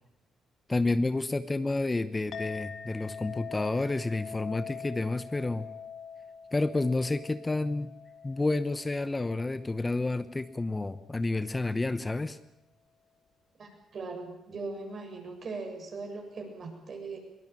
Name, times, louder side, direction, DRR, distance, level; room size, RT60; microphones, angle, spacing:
voice 1, 0.7-5.7 6.5-7.9 8.2-12.4, left 2 dB, 20° left, 13 dB, 0.9 m, -30 dB
Chink clink, 2.3-11.0, left 6 dB, 60° left, 2.3 m, -45 dB
voice 2, 13.6-17.2, right 3 dB, 50° right, 3 dB, 7.1 m, -39 dB
22.0 x 18.5 x 9.0 m, 0.87 s
cardioid pair, 90°, 0 cm